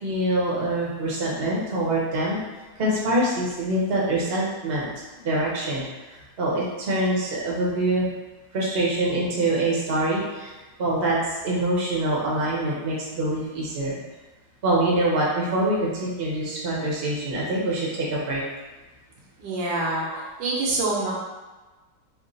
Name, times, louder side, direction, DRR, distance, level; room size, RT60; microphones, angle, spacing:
voice 1, 0.0-2.4 2.8-4.9 5.2-8.1 8.5-10.5 10.8-11.2 11.4-14.0 14.6-18.4, right 1 dB, 45° right, -5 dB, 0.8 m, -25 dB
voice 2, 19.4-21.1, right 2 dB, 85° right, -5 dB, 1.5 m, -26 dB
3.6 x 2.2 x 3.8 m, 1.2 s
omnidirectional pair, 2.0 m